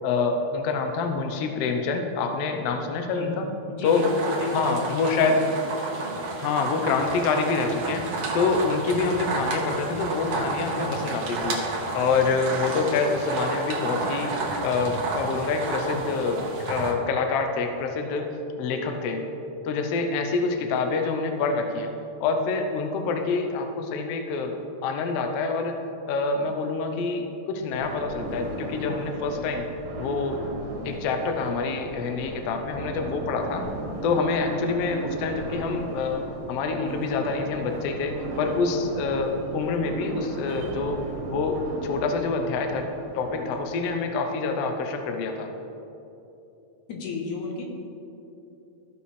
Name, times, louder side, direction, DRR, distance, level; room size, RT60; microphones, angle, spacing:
voice 1, 0.0-3.4 3.8-4.1 4.5-5.4 6.4-8.1 8.3-11.6 11.9-14.3 14.6-18.3 18.6-19.2 19.6-21.9 22.2-25.8 26.1-29.6 30.0-30.4 30.8-33.7 34.0-36.2 36.5-41.0 41.3-42.9 43.1-45.5, left 4 dB, 90° left, 5 dB, 1.3 m, -26 dB
voice 2, 3.7-5.4 5.9-6.3 46.9-47.6, left 3 dB, 70° left, 1 dB, 2.4 m, -34 dB
sound 1, 3.8-16.9, right 3 dB, 60° right, 1.8 m, -31 dB
sound 2, 27.7-43.4, right 2 dB, 80° right, 2.7 m, -37 dB
14.5 x 5.7 x 3.2 m, 2.8 s
omnidirectional pair, 3.7 m